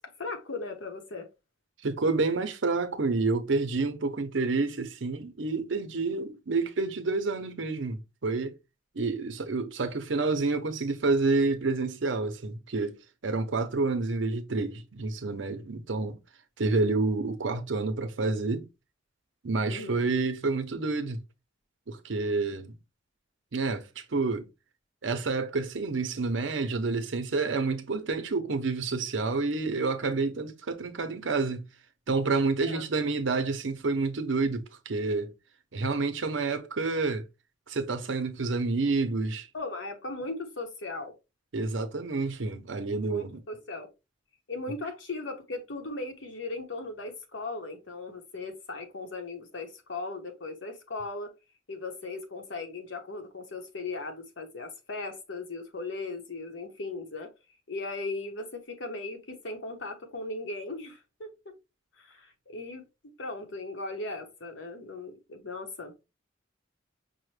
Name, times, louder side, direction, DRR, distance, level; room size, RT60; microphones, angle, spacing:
voice 1, 0.2-1.3 19.7-20.0 32.6-32.8 39.5-41.1 43.1-43.9 44.5-51.3 51.7-57.3 57.7-61.3 62.0-62.8 63.2-65.9, left 3 dB, 70° left, 0.9 m, -38 dB
voice 2, 1.8-8.5 8.9-12.9 13.2-16.2 16.6-18.7 19.4-21.2 21.9-22.7 23.5-24.5 25.0-31.6 32.1-35.3 35.7-37.2 37.7-39.5 41.5-43.4, right 3 dB, 70° right, 0.7 m, -29 dB
5.5 x 2.1 x 3.2 m
head